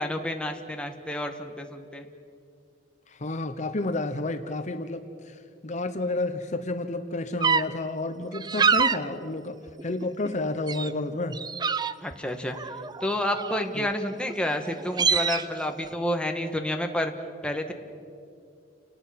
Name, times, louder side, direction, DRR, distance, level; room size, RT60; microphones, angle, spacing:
voice 1, 0.0-2.1 12.0-12.6 13.0-17.1 17.4-17.7, left 1 dB, 5° left, 4 dB, 1.5 m, -29 dB
voice 2, 3.1-9.5 9.8-11.4 13.7-13.9, left 2 dB, 40° left, 8 dB, 0.9 m, -31 dB
sound 1, 7.4-7.6 8.3-9.0 9.6-10.3 10.7-10.9 11.3-12.1 12.5-13.7 14.3-14.4 14.7-15.4, right 5 dB, 25° right, 0.5 m, -25 dB
29.5 x 19.0 x 5.8 m, 2.5 s
head